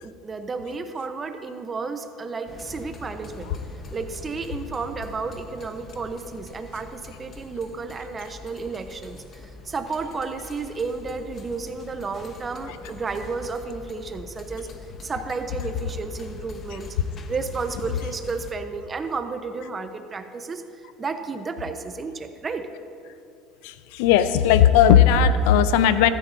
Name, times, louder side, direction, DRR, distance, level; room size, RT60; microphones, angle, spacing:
voice 1, 0.0-3.5 3.9-14.7 15.0-17.0 17.3-20.6 21.0-22.7, right 4 dB, 25° right, 8 dB, 0.9 m, -32 dB
sound 1, 2.5-18.5, left 4 dB, 40° left, 1.2 m, -43 dB
voice 2, 23.6-26.1, left 9 dB, 80° left, 12 dB, 0.6 m, -17 dB
15.0 x 13.0 x 2.8 m, 2.5 s
supercardioid pair, 95°, 0 cm